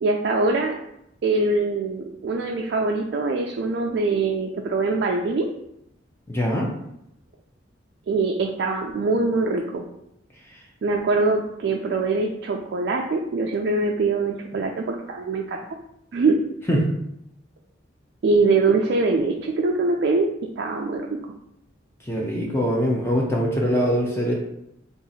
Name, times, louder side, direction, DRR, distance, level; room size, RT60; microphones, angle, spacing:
voice 1, 0.0-0.8 1.2-5.4 8.1-9.8 10.8-15.6 16.1-16.3 18.2-20.3 20.6-21.1, right 3 dB, 60° right, 1 dB, 0.3 m, -23 dB
voice 2, 6.3-6.7 16.7-16.9 22.0-24.4, equal, 15° left, -3 dB, 0.5 m, -22 dB
2.8 x 2.4 x 4.0 m, 0.79 s
head